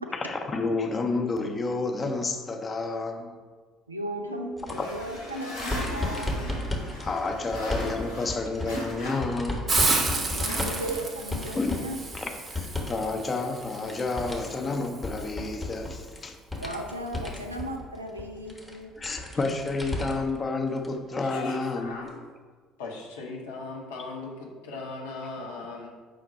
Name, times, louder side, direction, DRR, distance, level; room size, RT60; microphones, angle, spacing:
voice 1, 0.1-3.3 4.7-4.9 7.0-9.7 11.5-11.9 12.1-16.4 19.0-22.0, left 3 dB, 30° left, 4 dB, 0.5 m, -30 dB
voice 2, 3.9-6.5 10.1-12.0 16.6-19.0 19.3-19.4, right 1 dB, 90° right, 3 dB, 0.3 m, -36 dB
sound 1, 4.6-13.1 13.4-20.4 20.8-20.9 22.1-22.2, left 2 dB, 10° left, 0.8 m, -35 dB
sound 2, 4.7-9.4 9.7-11.2, left 1 dB, 90° left, 1.0 m, -38 dB
Hiss, 9.7-15.3, right 3 dB, 30° right, 0.5 m, -31 dB
voice 3, 21.2-22.2 22.8-25.9, left 3 dB, 70° left, -2 dB, 0.7 m, -38 dB
5.1 x 2.1 x 4.0 m, 1.5 s
figure-of-eight pair, 55°, 0 cm